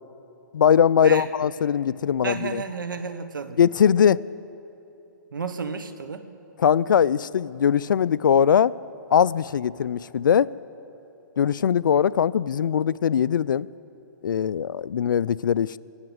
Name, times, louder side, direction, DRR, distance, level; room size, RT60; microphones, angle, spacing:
voice 1, 0.5-2.6 3.6-4.2 6.6-8.7 9.1-10.5 11.4-13.7 14.2-15.8, left 8 dB, 80° left, 19 dB, 0.4 m, -21 dB
voice 2, 2.2-3.6 5.3-6.2, right 5 dB, 85° right, 9 dB, 1.2 m, -31 dB
23.0 x 8.0 x 8.0 m, 2.9 s
hypercardioid pair, 140°, 11 cm